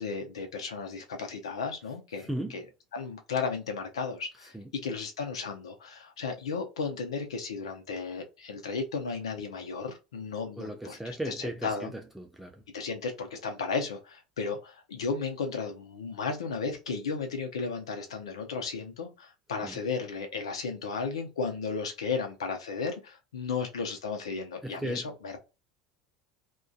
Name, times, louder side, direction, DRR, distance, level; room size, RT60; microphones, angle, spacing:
voice 1, 0.0-2.6 2.9-4.5 4.8-11.9 12.7-25.4, left 5 dB, 90° left, 0.6 m, -34 dB
voice 2, 10.6-12.6 19.6-19.8 24.6-25.1, right 1 dB, 5° right, 0.4 m, -36 dB
2.4 x 2.2 x 2.3 m
hypercardioid pair, 85°, 3 cm